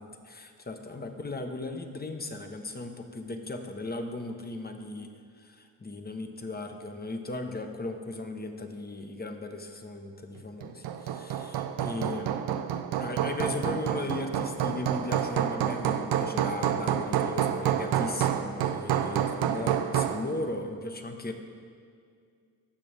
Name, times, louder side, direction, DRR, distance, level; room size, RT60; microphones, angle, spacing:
voice 1, 0.0-12.3 12.9-21.3, left 2 dB, 25° left, 5 dB, 1.0 m, -37 dB
Hammer, 10.6-20.3, right 9 dB, 75° right, 0.7 m, -28 dB
16.0 x 6.1 x 3.4 m, 2.2 s
supercardioid pair, 55°, 40 cm